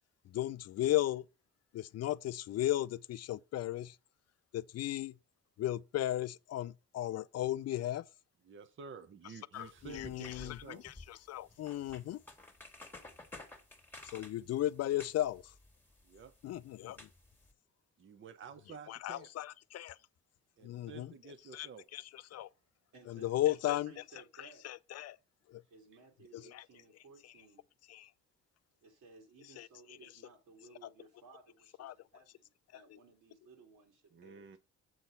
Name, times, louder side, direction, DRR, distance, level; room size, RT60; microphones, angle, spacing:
voice 1, 0.3-1.2 1.7-3.9 4.5-5.1 5.6-8.0 9.5-9.7 9.9-10.8 11.3-12.2 14.1-15.4 16.4-17.0 18.9-20.0 20.6-21.1 21.5-21.7 21.9-22.0 22.3-22.5 23.1-23.9 24.6-25.2 25.5-25.6 26.3-26.6 27.9-28.1 29.6-29.7 31.8-31.9, left 14 dB, 55° left, 0.4 m, -35 dB
voice 2, 8.4-10.8 16.0-16.3 18.0-19.3 20.6-21.8 34.1-34.6, right 6 dB, 40° right, 0.7 m, -51 dB
sound 1, 9.5-17.5, left 2 dB, 5° left, 1.5 m, -55 dB
voice 3, 22.4-24.7 25.7-27.6 28.8-34.6, right 3 dB, 75° right, 2.9 m, -59 dB
7.8 x 4.3 x 5.3 m
cardioid pair, 90°, 30 cm